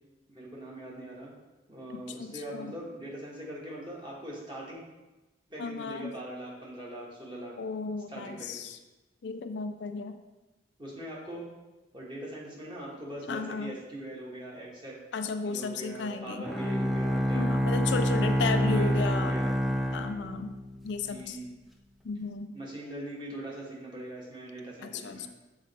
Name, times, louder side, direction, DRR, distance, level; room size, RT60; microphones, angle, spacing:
voice 1, 0.3-1.3 1.7-4.8 5.5-7.6 8.1-8.7 10.8-11.4 11.9-15.0 15.4-17.4 18.7-19.6 21.1-21.5 22.5-25.3, right 1 dB, 25° right, -4 dB, 1.5 m, -41 dB
voice 2, 1.9-2.7 5.6-6.1 7.6-8.8 9.2-10.2 13.3-13.8 15.1-16.4 17.3-19.4 19.9-20.6 20.8-21.4 22.0-22.5 24.8-25.3, left 4 dB, 65° left, 8 dB, 0.4 m, -34 dB
Bowed string instrument, 16.4-20.9, equal, ahead, 0.4 m, -27 dB
7.6 x 3.9 x 4.3 m, 1.1 s
head